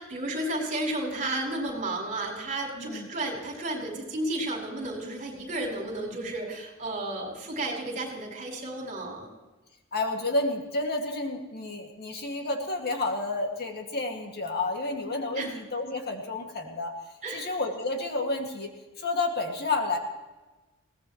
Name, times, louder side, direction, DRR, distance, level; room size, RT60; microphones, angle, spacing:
voice 1, 0.0-9.3 15.4-15.5 17.2-17.5, right 1 dB, 35° right, 0 dB, 4.8 m, -32 dB
voice 2, 2.8-3.1 9.9-16.9 17.3-18.7 19.0-20.0, left 2 dB, 50° left, 3 dB, 2.1 m, -30 dB
21.5 x 18.0 x 3.1 m, 1.1 s
head